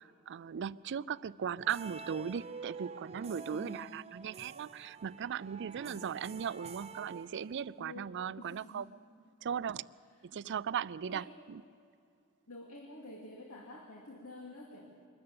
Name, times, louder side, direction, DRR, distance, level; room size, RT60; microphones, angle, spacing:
voice 1, 0.0-8.9 9.4-9.8 10.3-11.6, right 7 dB, 55° right, 18 dB, 0.4 m, -38 dB
sound 1, 1.6-7.9, right 5 dB, 30° right, 0.8 m, -48 dB
voice 2, 3.5-4.0 5.8-6.0 7.8-8.9 10.3-10.4 11.1-11.3 12.5-14.9, left 2 dB, 85° left, -1 dB, 2.5 m, -49 dB
23.0 x 13.5 x 8.6 m, 2.4 s
head